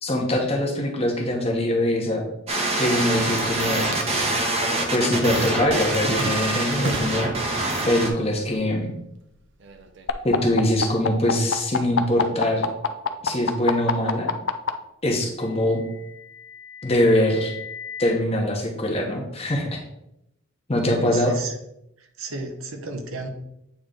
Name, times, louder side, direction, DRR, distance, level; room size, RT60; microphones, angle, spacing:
voice 1, 0.0-2.3 2.8-4.0 4.9-7.5 7.8-8.9 10.2-12.7 13.2-14.3 15.0-15.8 16.8-17.5 18.0-19.8 20.7-21.3, left 1 dB, 30° left, 1 dB, 1.0 m, -23 dB
sound 1, 2.5-8.1, right 2 dB, 30° right, 0.8 m, -25 dB
sound 2, 5.4-7.4 7.9-8.5 8.8-10.5, right 2 dB, 60° right, 0.6 m, -34 dB
sound 3, 10.1-14.7 15.8-18.1, left 6 dB, 65° left, 0.5 m, -26 dB
voice 2, 20.9-21.5 22.2-23.3, right 3 dB, 80° right, 5 dB, 0.9 m, -33 dB
8.4 x 3.1 x 3.8 m, 0.83 s
head